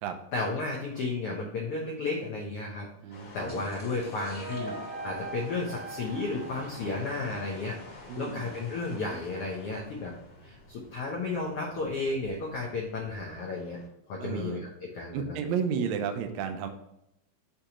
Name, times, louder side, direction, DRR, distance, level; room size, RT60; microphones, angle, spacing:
voice 1, 0.3-2.9 3.3-4.7 5.0-10.1 10.4-13.8 14.1-15.4, left 3 dB, 90° left, -3 dB, 1.3 m, -33 dB
voice 2, 3.0-3.6 8.1-8.5 14.2-14.6 15.1-16.7, right 7 dB, 85° right, 6 dB, 1.6 m, -32 dB
sound 1, 3.1-13.9, left 2 dB, 45° left, 1.8 m, -49 dB
sound 2, 3.5-7.8, equal, 5° left, 0.8 m, -53 dB
sound 3, 3.6-7.5, right 3 dB, 20° right, 1.0 m, -42 dB
6.7 x 3.0 x 4.9 m, 0.80 s
omnidirectional pair, 3.9 m